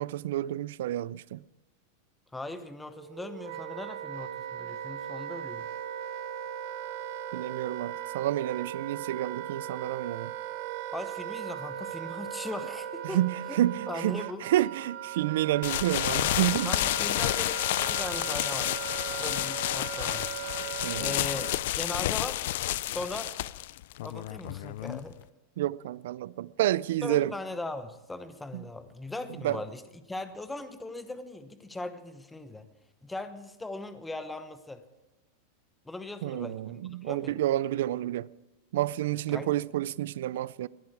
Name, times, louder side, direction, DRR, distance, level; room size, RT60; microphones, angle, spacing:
voice 1, 0.0-1.4 7.3-10.3 13.0-16.7 20.8-21.2 25.6-27.3 28.5-28.6 29.4-29.6 36.2-38.3 38.7-40.7, right 13 dB, 70° right, 0.4 m, -29 dB
voice 2, 2.3-5.7 10.9-13.2 13.5-13.6 13.9-14.5 16.6-18.8 19.2-20.3 21.0-21.5 21.7-22.5 22.9-23.3 24.0-25.2 27.0-29.8 30.1-32.6 33.0-34.8 35.8-37.4 39.3-39.6, left 2 dB, 5° left, 0.9 m, -39 dB
Wind instrument woodwind instrument, 2.9-21.7, right 11 dB, 50° right, 0.9 m, -38 dB
sound 1, 15.6-25.2, left 15 dB, 65° left, 0.4 m, -30 dB
19.5 x 11.0 x 4.7 m
supercardioid pair, 160°, 0 cm